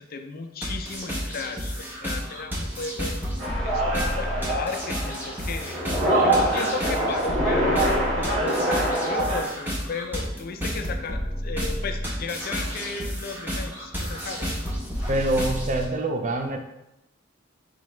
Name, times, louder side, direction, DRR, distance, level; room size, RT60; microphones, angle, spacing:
voice 1, 0.0-3.2 3.6-5.8 6.2-7.8 8.1-14.5, left 4 dB, 50° left, 5 dB, 0.4 m, -35 dB
sound 1, 0.6-15.9, equal, 10° right, 0.9 m, -31 dB
sound 2, 3.4-9.5, right 1 dB, 80° right, 1.5 m, -25 dB
voice 2, 15.1-16.6, right 2 dB, 40° right, 4 dB, 0.5 m, -25 dB
4.6 x 3.3 x 3.1 m, 0.90 s
head